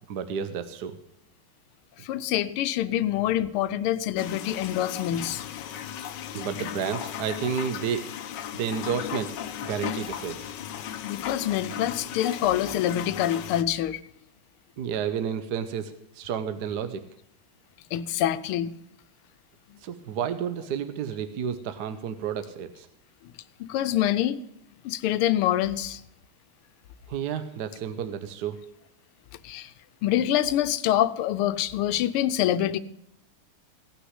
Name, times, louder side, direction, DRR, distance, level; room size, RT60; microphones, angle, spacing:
voice 1, 0.1-1.0 6.3-8.1 8.5-9.4 9.6-10.5 14.8-17.0 19.8-22.9 27.1-28.6, right 7 dB, 60° right, 10 dB, 1.2 m, -31 dB
voice 2, 2.0-5.4 11.0-14.0 17.9-18.7 23.6-24.4 24.8-26.0 29.4-29.7 30.0-32.8, left 12 dB, 90° left, 13 dB, 1.6 m, -26 dB
sound 1, 4.2-13.6, left 10 dB, 65° left, 1.3 m, -36 dB
17.0 x 6.1 x 9.6 m, 0.75 s
omnidirectional pair, 2.3 m